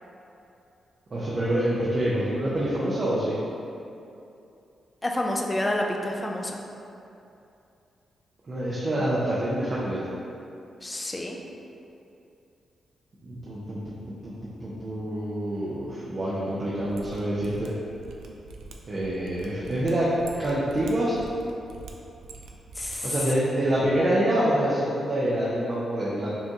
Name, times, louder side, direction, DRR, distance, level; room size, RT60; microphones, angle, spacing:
voice 1, 1.1-3.4 8.5-10.0 13.2-13.9 14.2-17.7 18.9-20.1 20.4-21.2 23.0-26.3, right 1 dB, 45° right, -8 dB, 0.6 m, -26 dB
voice 2, 5.0-6.6 10.8-11.4 22.8-23.1, left 1 dB, 20° left, 1 dB, 0.4 m, -29 dB
Mechanisms, 16.9-23.0 23.2-23.3, right 3 dB, 85° right, 0.3 m, -45 dB
5.5 x 2.3 x 2.8 m, 2.7 s
cardioid pair, 70°, 0 cm